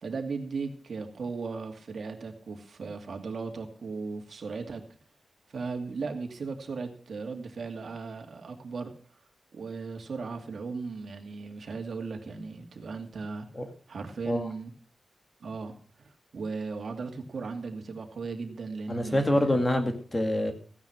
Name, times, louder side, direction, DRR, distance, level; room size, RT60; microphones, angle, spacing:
voice 1, 0.0-4.8 5.5-8.9 9.5-13.5 13.9-14.7 15.4-15.7 16.0-19.6, right 4 dB, 60° right, 5 dB, 2.4 m, -37 dB
voice 2, 18.9-20.5, left 1 dB, 20° left, 6 dB, 2.2 m, -26 dB
15.5 x 9.8 x 6.1 m, 0.43 s
wide cardioid pair, 160°, 0 cm